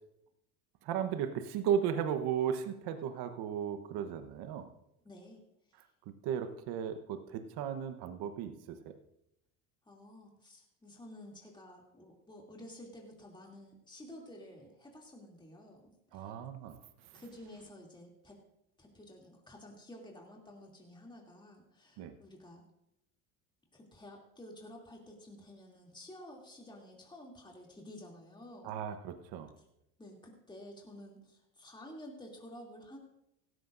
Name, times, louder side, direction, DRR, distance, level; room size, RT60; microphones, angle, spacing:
voice 1, 0.8-4.7 5.8-5.9 6.2-8.9 16.1-16.8 17.1-17.2 22.0-22.1 28.6-29.5, right 8 dB, 60° right, 8 dB, 1.1 m, -35 dB
voice 2, 5.0-5.4 9.8-16.4 17.1-18.4 18.8-22.6 23.7-28.8 30.0-33.0, left 1 dB, 10° left, -1 dB, 2.8 m, -52 dB
16.0 x 14.0 x 2.6 m, 0.83 s
supercardioid pair, 105°, 43 cm